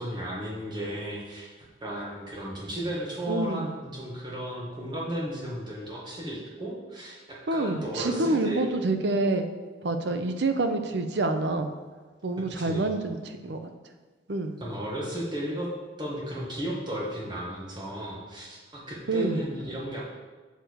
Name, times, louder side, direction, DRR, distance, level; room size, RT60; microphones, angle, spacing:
voice 1, 0.0-1.5 1.8-8.6 12.4-13.0 14.6-15.7 16.0-20.0, equal, 25° right, -4 dB, 1.8 m, -34 dB
voice 2, 3.3-3.7 7.5-9.5 9.8-11.7 12.2-13.6 14.3-14.5 19.1-19.4, right 2 dB, 80° right, 7 dB, 0.7 m, -27 dB
6.8 x 6.4 x 4.7 m, 1.3 s
head